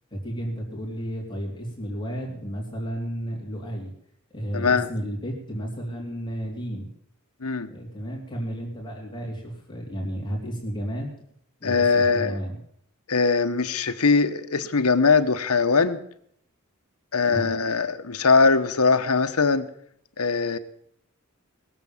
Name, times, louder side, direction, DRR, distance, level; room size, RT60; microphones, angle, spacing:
voice 1, 0.1-3.9 4.3-6.9 7.7-11.1 11.6-12.6 17.3-17.5, equal, 20° left, -3 dB, 3.3 m, -32 dB
voice 2, 4.5-4.9 7.4-7.7 11.6-12.4 13.1-16.0 17.1-19.7 20.2-20.6, left 4 dB, 85° left, 9 dB, 1.1 m, -21 dB
20.5 x 7.4 x 7.3 m, 0.69 s
head